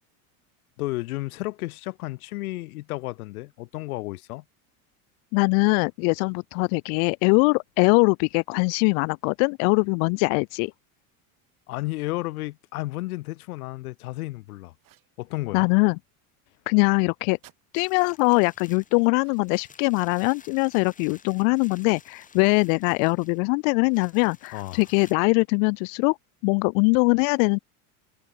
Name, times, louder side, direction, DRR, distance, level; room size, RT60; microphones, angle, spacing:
voice 1, 0.8-4.4 11.7-14.7 15.2-15.7 24.5-24.8, left 19 dB, 90° left, 1.9 m, -32 dB
voice 2, 5.3-10.7 15.5-16.0 16.7-17.4 17.7-26.2 26.4-27.6, left 40 dB or more, 65° left, 0.5 m, -22 dB
sound 1, 14.8-15.2 17.4-17.6 19.1-19.7, right 15 dB, 45° right, 6.3 m, -56 dB
sound 2, 17.7-25.1, left 6 dB, 20° left, 1.4 m, -53 dB
supercardioid pair, 120°, 43 cm